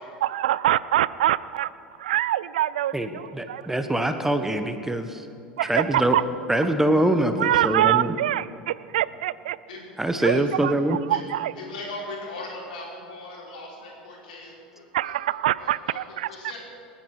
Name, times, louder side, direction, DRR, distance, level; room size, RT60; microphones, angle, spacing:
voice 1, 0.2-1.7 2.0-3.7 5.6-6.2 7.4-9.6 10.2-11.5 14.9-16.3, right 13 dB, 70° right, 19 dB, 0.4 m, -25 dB
voice 2, 2.9-5.2 5.6-6.2 6.5-8.2 10.0-11.0, right 1 dB, 5° right, 8 dB, 1.1 m, -24 dB
voice 3, 10.2-10.6 11.1-11.2 11.5-15.1 15.6-16.0 16.3-16.6, left 2 dB, 70° left, -2 dB, 4.5 m, -39 dB
28.0 x 10.0 x 4.8 m, 2.6 s
figure-of-eight pair, 75°, 5 cm